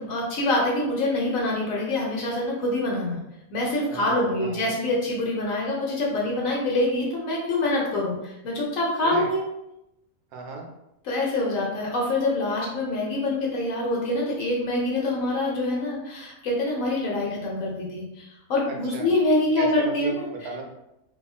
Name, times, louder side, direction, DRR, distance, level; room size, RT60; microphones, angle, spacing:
voice 1, 0.0-3.2 3.5-9.4 11.0-20.3, left 2 dB, 65° left, -3 dB, 1.0 m, -25 dB
voice 2, 3.9-4.7 9.0-9.3 10.3-10.6 18.7-19.1 19.6-20.6, right 3 dB, 75° right, 1 dB, 1.1 m, -36 dB
2.8 x 2.6 x 2.3 m, 0.89 s
omnidirectional pair, 1.7 m